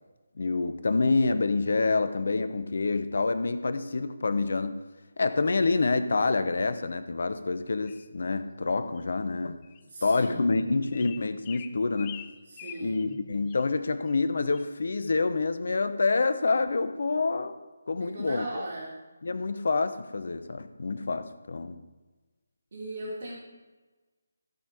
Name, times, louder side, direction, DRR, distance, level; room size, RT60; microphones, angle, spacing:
voice 1, 0.4-4.8 5.2-9.6 10.0-12.2 12.8-17.6 17.9-18.5 19.2-21.8, left 3 dB, 55° left, 11 dB, 0.8 m, -27 dB
sound 1, 7.9-8.1 9.0-9.1 9.6-9.8 10.1-10.3 10.9-13.2 13.5-13.6 14.0-14.2 14.5-14.7, left 11 dB, 20° left, 0.4 m, -46 dB
voice 2, 9.8-10.7 12.4-13.2 18.0-19.0 22.7-23.3, right 1 dB, 50° right, -7 dB, 3.1 m, -38 dB
15.5 x 5.5 x 4.9 m, 1.2 s
figure-of-eight pair, 150°, 0 cm